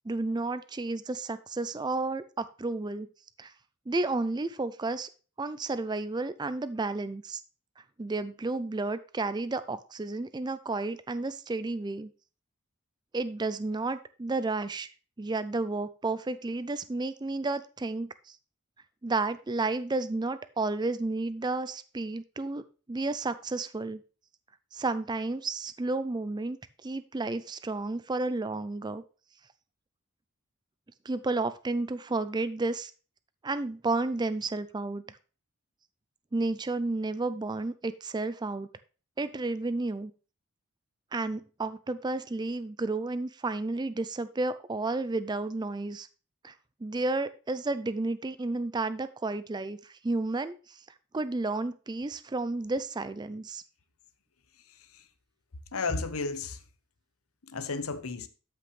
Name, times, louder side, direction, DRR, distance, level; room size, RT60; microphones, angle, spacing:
voice 1, 0.0-3.1 3.4-3.5 3.9-5.1 5.4-7.4 8.0-12.1 13.1-14.9 15.2-18.4 19.0-24.0 24.7-29.0 31.1-32.9 33.4-35.2 36.3-38.7 39.2-40.1 41.1-46.1 46.4-46.5 46.8-50.8 51.1-53.6, right 3 dB, 20° right, 0.4 m, -32 dB
voice 2, 54.7-55.1 55.7-56.6 57.4-58.3, left 4 dB, 80° left, 0.9 m, -33 dB
13.0 x 5.9 x 3.3 m
head